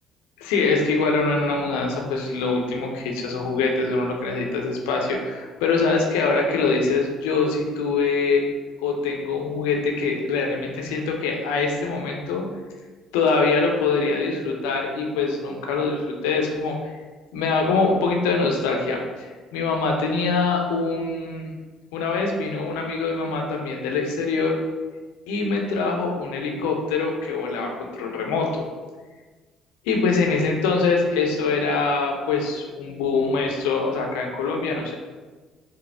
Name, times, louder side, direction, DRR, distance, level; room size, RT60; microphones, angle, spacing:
voice 1, 0.4-8.4 8.8-12.4 13.1-16.8 17.3-21.5 21.9-24.6 25.3-28.7 29.8-34.9, left 4 dB, 70° left, 1 dB, 0.6 m, -24 dB
5.4 x 2.0 x 3.4 m, 1.3 s
figure-of-eight pair, 50°, 0 cm